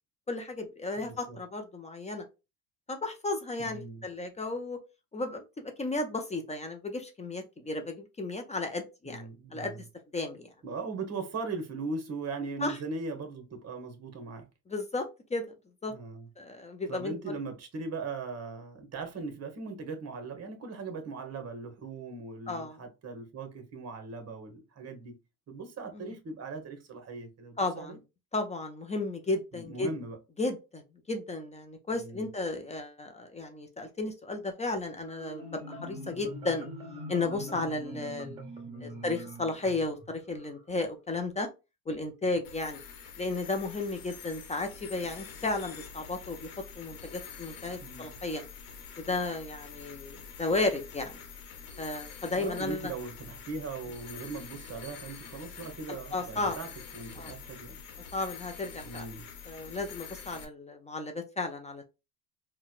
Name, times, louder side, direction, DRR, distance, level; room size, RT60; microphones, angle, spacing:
voice 1, 0.3-2.2 2.9-4.8 5.1-5.4 5.8-9.7 10.1-10.5 12.6-12.8 14.7-15.5 15.8-15.9 16.4-17.4 22.5-22.8 25.9-26.1 27.6-28.0 28.3-29.9 30.4-30.8 31.1-36.7 37.1-38.4 38.8-41.5 41.9-42.8 43.2-48.4 49.0-51.2 51.8-52.9 55.9-56.6 57.2-57.3 58.1-59.1 59.5-61.9, left 2 dB, 15° left, 0.5 m, -34 dB
voice 2, 1.0-1.4 3.6-4.1 9.0-9.8 10.6-14.5 15.9-16.3 16.9-25.2 25.5-28.0 29.5-30.2 31.9-32.3 38.7-39.1 47.8-48.1 52.3-56.7 56.9-57.8 58.8-59.3, right 4 dB, 35° right, 1.1 m, -39 dB
Marimba xylophone, 35.0-40.6, equal, 10° right, 1.6 m, -43 dB
sound 1, 42.4-60.4, left 6 dB, 75° left, 1.0 m, -46 dB
3.9 x 2.2 x 2.4 m
supercardioid pair, 90°, 45 cm